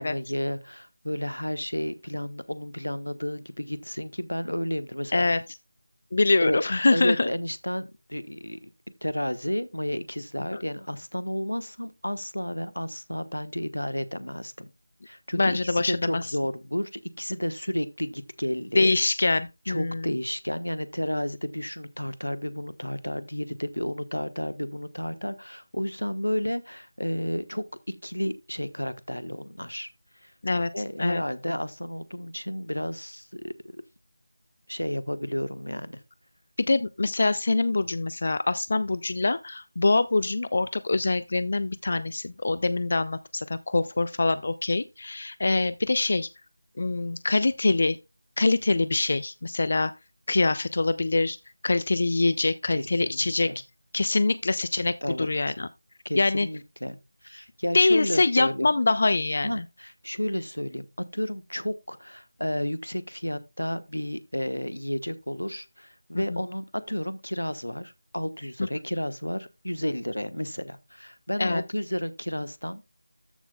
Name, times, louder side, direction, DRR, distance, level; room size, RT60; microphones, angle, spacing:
voice 1, 0.0-5.2 6.4-6.6 6.9-8.7 9.0-14.7 15.0-18.9 19.7-29.9 30.2-33.8 34.7-36.0 52.7-53.6 55.0-55.5 56.0-57.0 57.2-58.7 59.4-72.8, equal, 80° left, 1.1 m, -32 dB
voice 2, 6.1-7.3 10.5-10.6 15.3-16.3 18.8-20.1 30.4-30.7 31.0-31.2 36.7-46.3 46.8-48.0 48.4-49.9 50.3-51.4 51.6-53.5 53.9-55.7 56.1-56.5 57.7-59.6 66.1-66.4 71.4-71.6, left 3 dB, 40° left, 0.4 m, -24 dB
14.0 x 6.1 x 2.3 m
figure-of-eight pair, 165°, 0 cm